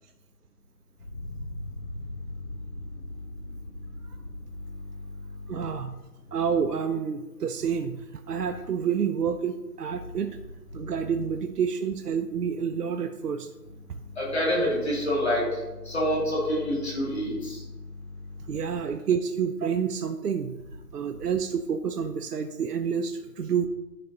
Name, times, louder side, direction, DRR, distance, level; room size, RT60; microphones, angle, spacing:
voice 1, 5.5-5.9 6.3-10.4 10.7-13.5 18.5-20.6 20.9-23.7, right 7 dB, 70° right, 6 dB, 0.6 m, -28 dB
voice 2, 14.2-15.4 15.9-17.6, equal, 40° left, -4 dB, 2.1 m, -26 dB
10.5 x 3.9 x 2.8 m, 1.1 s
figure-of-eight pair, 165°, 49 cm